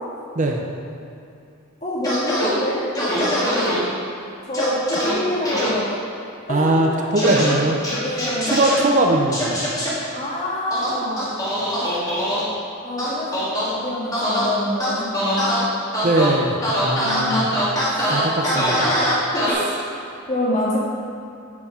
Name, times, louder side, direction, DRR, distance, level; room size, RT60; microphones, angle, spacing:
voice 1, 1.8-2.8 4.5-5.9 6.5-7.3 8.0-8.7 10.1-11.3 11.7-12.0 12.8-15.7 17.0-17.7 19.1-19.9 20.3-20.8, left 1 dB, 35° left, -6 dB, 1.7 m, -27 dB
sound 1, 2.0-2.5 3.0-3.8 4.5-5.1 5.5-5.7 7.2-7.5 7.8-8.8 9.3-9.9 10.7-12.4 13.0-13.7 14.1-14.5 14.8-15.6 15.9-16.3 16.6-19.5, equal, 15° left, 1.7 m, -22 dB
voice 2, 6.5-7.8 8.5-9.6 16.0-17.5 18.1-18.9, right 2 dB, 35° right, 1 dB, 0.5 m, -20 dB
8.5 x 4.5 x 5.5 m, 2.6 s
head